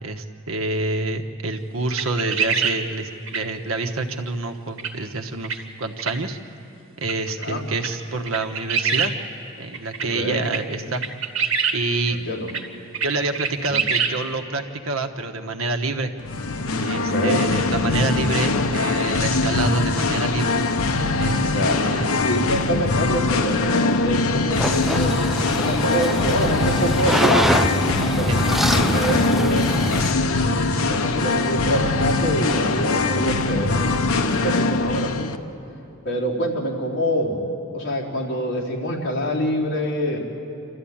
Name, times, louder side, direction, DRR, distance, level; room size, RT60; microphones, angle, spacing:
voice 1, 0.0-6.4 7.0-9.1 9.6-11.0 11.7-12.2 13.0-16.1 16.8-20.6 21.2-21.5 21.8-22.2 28.3-28.4, right 3 dB, 90° right, 7 dB, 1.2 m, -27 dB
sound 1, 1.9-2.8 3.3-3.4 3.8-3.9 4.8-4.9 5.4-5.6 6.0-6.1 7.0-7.1 7.4-7.5 7.8-7.9 8.3-9.1 9.7-10.1 10.4-10.6 10.9-11.8 12.1-12.2 12.5-12.6 12.9-13.1 13.3-14.1, right 6 dB, 65° right, 1.7 m, -24 dB
voice 2, 10.0-10.4 12.1-12.5 13.7-13.8 16.9-17.5 21.4-22.0 22.2-29.7 30.4-35.3 36.0-37.5 37.7-40.2, equal, 60° left, -5 dB, 4.1 m, -26 dB
Singing, 16.2-35.4, left 3 dB, 90° left, 0.9 m, -22 dB
sound 2, 24.5-30.1, equal, ahead, 0.5 m, -24 dB
27.5 x 13.5 x 8.7 m, 2.8 s
head